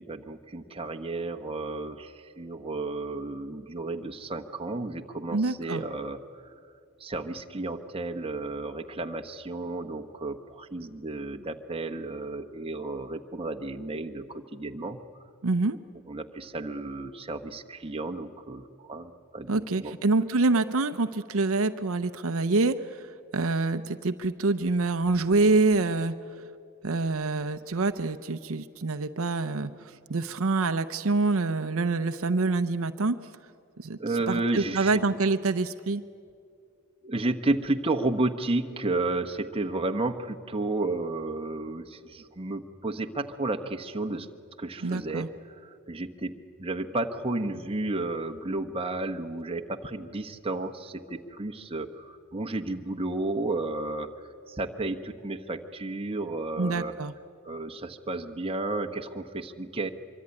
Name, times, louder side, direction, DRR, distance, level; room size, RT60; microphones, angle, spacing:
voice 1, 0.0-6.5 7.0-15.0 16.1-19.5 19.8-19.9 34.0-35.0 37.0-44.3 44.6-54.1 54.5-57.0 57.4-59.9, right 2 dB, 25° right, 5 dB, 1.1 m, -32 dB
voice 2, 5.3-5.8 15.4-15.8 19.5-23.1 23.3-26.1 26.8-33.2 33.8-34.0 34.3-36.0 44.8-45.3 56.6-57.1, right 3 dB, 65° right, 10 dB, 0.7 m, -26 dB
25.0 x 24.0 x 9.8 m, 2.3 s
head